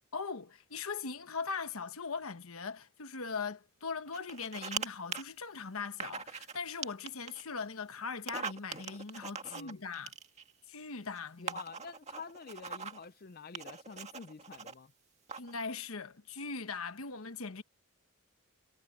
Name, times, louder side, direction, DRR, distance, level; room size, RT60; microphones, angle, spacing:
voice 1, 0.1-10.1 10.7-11.6 15.4-17.6, left 5 dB, 75° left, 1.2 m, -40 dB
sound 1, 4.1-4.9 5.1-5.2 6.0-6.6 6.8-7.4 8.1-10.5 11.2-11.3 11.5-13.0 13.5-14.7 15.3-15.6, right 5 dB, 30° right, 2.0 m, -41 dB
voice 2, 9.4-9.8 11.4-14.9, left 5 dB, 40° left, 0.5 m, -48 dB
head